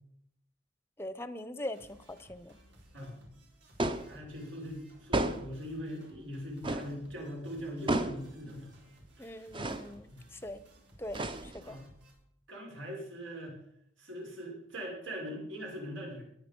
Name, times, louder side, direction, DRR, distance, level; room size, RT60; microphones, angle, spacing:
voice 1, 1.0-2.6 9.2-10.6 11.0-11.8, left 1 dB, 10° left, 13 dB, 0.7 m, -42 dB
sound 1, 1.7-12.1, right 1 dB, 65° right, 5.5 m, -59 dB
sound 2, 3.8-4.2 5.1-5.6 6.6-7.0 7.9-8.3 9.5-9.9 11.1-11.7, right 2 dB, 25° right, 0.7 m, -32 dB
voice 2, 4.0-8.7 9.2-9.4 10.1-10.2 11.6-11.9 12.5-13.6 14.0-16.2, equal, 80° right, -1 dB, 5.6 m, -41 dB
20.0 x 9.6 x 5.3 m, 0.74 s
head